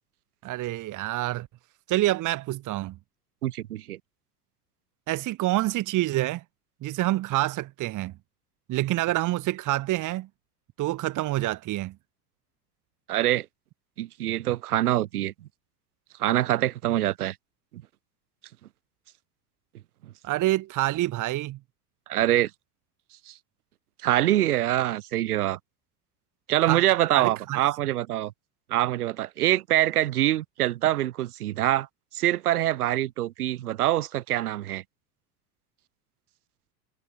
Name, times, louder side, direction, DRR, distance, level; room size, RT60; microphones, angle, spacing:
voice 1, 0.4-1.5 1.9-3.0 5.1-6.4 6.8-8.1 8.7-10.3 10.8-11.9 20.2-21.6 26.7-26.8 27.1-27.6, right 17 dB, 40° right, 2.6 m, -27 dB
voice 2, 3.4-4.0 13.1-13.5 14.0-15.3 16.2-17.4 17.7-17.8 22.1-22.5 23.3-23.4 24.0-25.6 26.5-28.3 28.7-31.9 32.1-34.8, right 14 dB, 65° right, 3.7 m, -24 dB
figure-of-eight pair, 80°, 49 cm